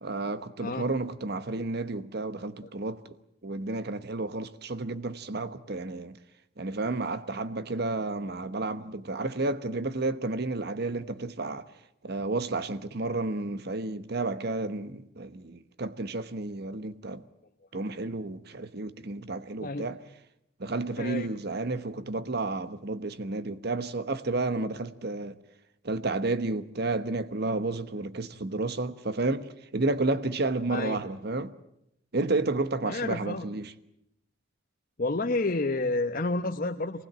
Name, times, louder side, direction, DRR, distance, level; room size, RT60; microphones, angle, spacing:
voice 1, 0.0-3.2 3.4-6.2 6.6-11.7 12.0-17.2 17.7-20.0 20.6-25.3 25.8-31.5 32.1-33.7, right 2 dB, 55° right, 1.1 m, -31 dB
voice 2, 21.0-21.3 30.7-31.0 32.9-33.5 35.0-37.0, left 2 dB, 45° left, 1.0 m, -30 dB
25.0 x 19.5 x 9.0 m
head